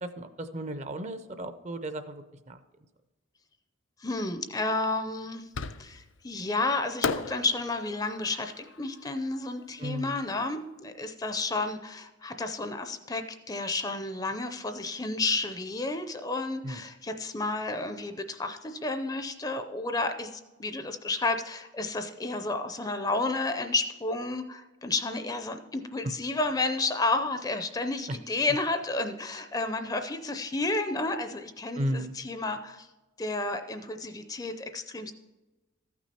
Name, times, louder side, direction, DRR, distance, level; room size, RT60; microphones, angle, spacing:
voice 1, 0.0-2.6 9.8-10.2 16.6-16.8 28.1-28.2 31.7-32.1, right 1 dB, 35° right, 11 dB, 0.5 m, -34 dB
voice 2, 4.0-5.5 5.8-32.9 33.2-35.1, left 2 dB, 20° left, 8 dB, 0.5 m, -31 dB
Fireworks, 5.5-6.2 7.0-10.1, left 5 dB, 75° left, 0.5 m, -36 dB
14.0 x 6.1 x 4.3 m, 1.2 s
head